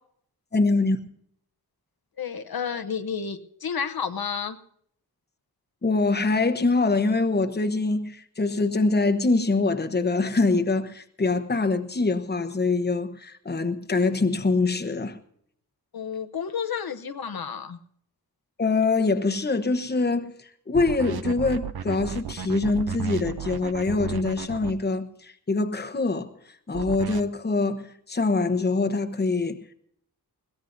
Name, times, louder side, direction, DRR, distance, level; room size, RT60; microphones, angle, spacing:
voice 1, 0.5-1.0 5.8-15.2 18.6-26.3 26.7-29.7, left 3 dB, 25° left, 1.0 m, -24 dB
voice 2, 2.2-4.6 15.9-17.8, left 6 dB, 70° left, 0.9 m, -31 dB
sound 1, 20.7-24.7 26.7-27.2, right 8 dB, 70° right, 0.7 m, -33 dB
21.5 x 17.0 x 2.7 m
wide cardioid pair, 125°, 38 cm